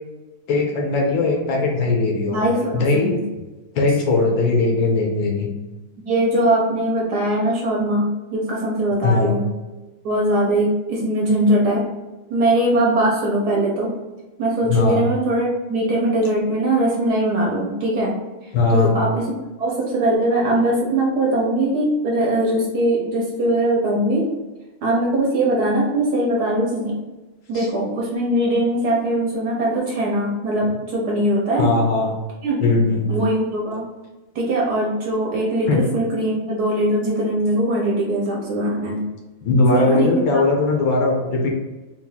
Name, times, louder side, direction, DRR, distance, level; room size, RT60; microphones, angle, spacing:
voice 1, 0.5-2.4 2.7-3.2 3.7-5.5 9.0-9.4 14.6-15.0 18.5-18.9 27.5-27.7 31.6-32.1 32.6-33.1 35.7-35.8 39.4-41.5, left 3 dB, 75° left, 0 dB, 1.5 m, -19 dB
voice 2, 2.3-3.2 6.0-9.4 10.0-11.8 12.3-13.9 14.4-18.1 18.7-19.3 19.6-24.3 24.8-26.9 27.5-31.7 32.4-32.6 33.1-33.8 34.3-39.0 39.7-40.2, right 1 dB, 60° right, -3 dB, 1.2 m, -21 dB
4.3 x 2.5 x 4.0 m, 1.1 s
omnidirectional pair, 2.3 m